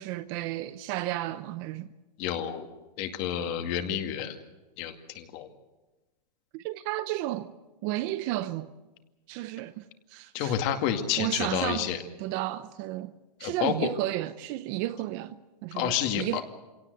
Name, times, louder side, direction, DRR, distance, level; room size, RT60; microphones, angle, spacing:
voice 1, 0.0-1.9 6.5-7.5 7.8-8.7 9.3-9.8 10.1-10.6 11.2-11.9 12.2-13.1 13.4-16.4, right 15 dB, 30° right, 0.7 m, -32 dB
voice 2, 2.2-2.7 3.0-4.4 4.8-5.5 10.3-12.0 13.4-13.7 15.7-16.4, left 10 dB, 35° left, 2.2 m, -29 dB
25.5 x 17.5 x 8.0 m
hypercardioid pair, 150°, 21 cm